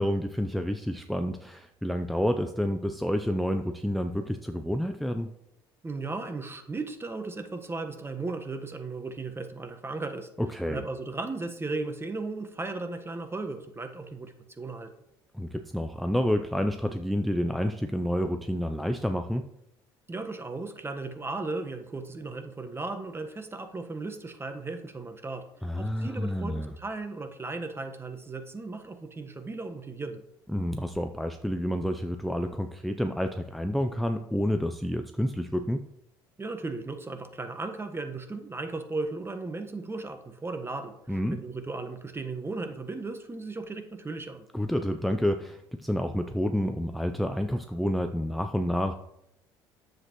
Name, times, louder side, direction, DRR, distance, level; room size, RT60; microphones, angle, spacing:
voice 1, 0.0-5.3 10.4-10.8 15.3-19.5 25.6-26.7 30.5-35.8 41.1-41.4 44.5-49.0, equal, ahead, 7 dB, 0.6 m, -29 dB
voice 2, 5.8-10.3 10.7-14.9 20.1-25.4 25.8-30.2 36.4-44.5, right 3 dB, 20° right, 7 dB, 1.4 m, -36 dB
9.9 x 7.8 x 3.1 m, 0.83 s
hypercardioid pair, 65°, 12 cm